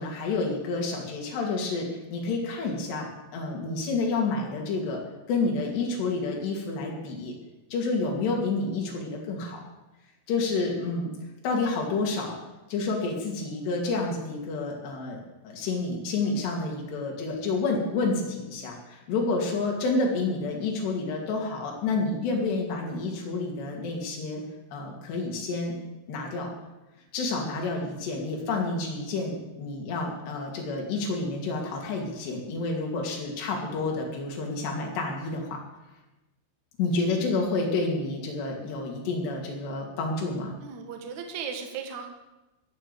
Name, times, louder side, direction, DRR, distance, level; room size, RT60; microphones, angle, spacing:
voice 1, 0.0-5.0 5.3-7.3 7.7-9.6 10.3-11.1 11.4-12.4 12.7-24.4 24.7-25.7 26.1-26.5 27.1-35.6 36.8-40.5, left 3 dB, 60° left, 0 dB, 4.6 m, -29 dB
voice 2, 40.6-42.1, right 6 dB, 55° right, 4 dB, 2.1 m, -38 dB
20.0 x 7.6 x 7.0 m, 1.0 s
omnidirectional pair, 5.7 m